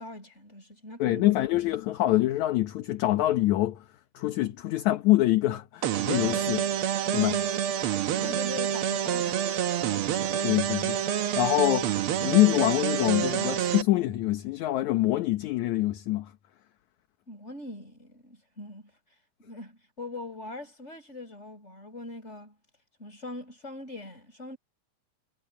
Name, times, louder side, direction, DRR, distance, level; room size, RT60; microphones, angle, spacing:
voice 1, 0.0-1.4 7.3-7.4 7.8-9.6 17.3-18.9 19.4-22.6 23.0-24.6, left 2 dB, 20° left, 8.1 m, -42 dB
voice 2, 1.0-3.8 4.1-6.7 7.1-7.4 10.4-11.0 11.4-11.9 12.2-16.3, left 16 dB, 70° left, 2.3 m, -25 dB
sound 1, 5.8-13.8, right 9 dB, 65° right, 1.4 m, -28 dB
omnidirectional pair, 3.7 m